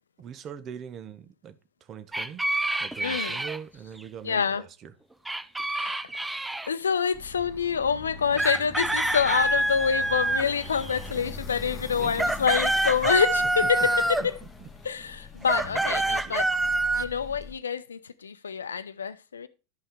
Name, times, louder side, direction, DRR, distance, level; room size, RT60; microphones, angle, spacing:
voice 1, 0.2-2.4 2.8-4.9 8.3-8.4 12.0-12.3 13.0-13.2 13.8-13.9 14.2-14.7 15.7-16.5, right 8 dB, 35° right, 0.8 m, -42 dB
sound 1, 2.1-3.6 5.2-6.7 8.4-11.1 11.9-14.3 15.4-17.1, right 2 dB, 5° right, 0.4 m, -26 dB
voice 2, 3.0-3.4 4.2-4.6 5.7-6.1 6.7-14.3 14.8-16.4 16.9-19.5, left 6 dB, 75° left, 0.6 m, -27 dB
sound 2, 7.1-17.5, left 3 dB, 15° left, 1.6 m, -42 dB
11.5 x 5.5 x 3.5 m
figure-of-eight pair, 85°, 0 cm